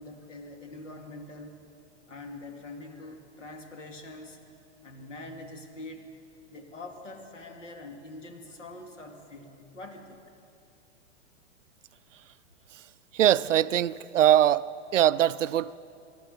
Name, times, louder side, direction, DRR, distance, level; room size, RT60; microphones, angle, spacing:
voice 1, 0.0-1.6 2.1-4.4 4.8-6.1 6.5-10.2, left 2 dB, 85° left, 2.2 m, -44 dB
voice 2, 13.1-15.8, right 11 dB, 85° right, 0.5 m, -22 dB
19.0 x 13.0 x 5.1 m
hypercardioid pair, 115°, 36 cm